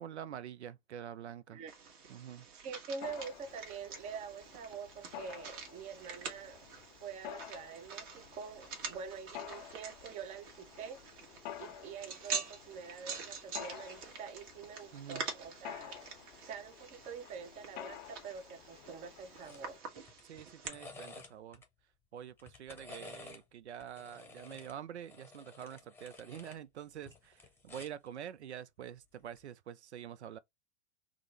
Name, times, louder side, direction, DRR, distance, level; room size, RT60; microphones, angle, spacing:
voice 1, 0.0-1.6 2.1-2.5 14.9-15.2 20.2-21.6 22.1-30.4, right 9 dB, 80° right, 0.5 m, -46 dB
sound 1, 1.7-20.7, right 5 dB, 50° right, 1.2 m, -46 dB
voice 2, 2.5-6.6 7.0-11.0 11.6-16.0 16.4-19.9, right 6 dB, 20° right, 0.5 m, -46 dB
Mechanisms, 3.0-19.8, left 11 dB, 40° left, 0.6 m, -51 dB
sound 2, 19.4-19.6 20.0-21.7 22.3-23.4 23.8-26.6 26.9-28.1 29.2-29.4, left 3 dB, 5° left, 0.8 m, -52 dB
3.6 x 2.0 x 3.2 m
figure-of-eight pair, 100°, 34 cm